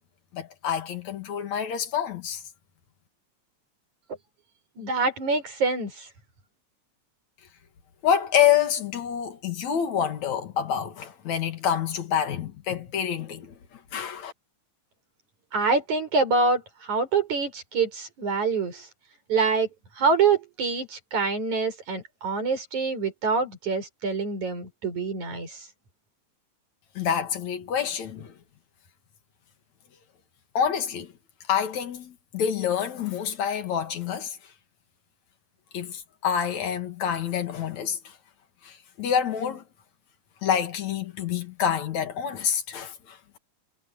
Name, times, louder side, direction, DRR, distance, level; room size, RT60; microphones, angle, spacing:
voice 1, 0.3-2.4 8.0-13.5 13.9-14.3 27.0-28.3 30.5-31.1 31.5-34.4 35.7-38.0 38.6-39.6 40.4-43.4, left 8 dB, 70° left, 3.2 m, -27 dB
voice 2, 4.8-6.1 15.5-18.9 19.3-19.7 20.0-25.7, right 4 dB, 75° right, 7.6 m, -25 dB
omnidirectional pair, 3.4 m